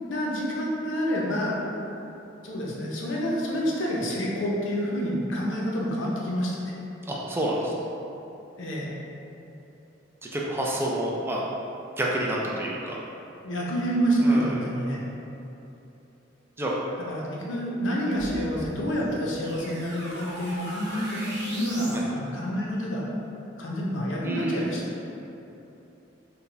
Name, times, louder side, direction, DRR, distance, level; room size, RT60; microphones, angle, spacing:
voice 1, 0.1-1.6 2.4-6.7 8.6-8.9 13.4-15.0 17.0-23.1 23.6-24.8, equal, 70° left, -4 dB, 0.6 m, -28 dB
voice 2, 7.1-7.7 10.3-11.4 12.0-13.0 14.2-14.6 16.6-16.7 21.9-22.0 24.2-24.6, right 1 dB, 10° right, -4 dB, 0.3 m, -28 dB
sound 1, 18.1-22.1, equal, 60° right, 0.7 m, -39 dB
4.0 x 2.2 x 3.3 m, 3.0 s
head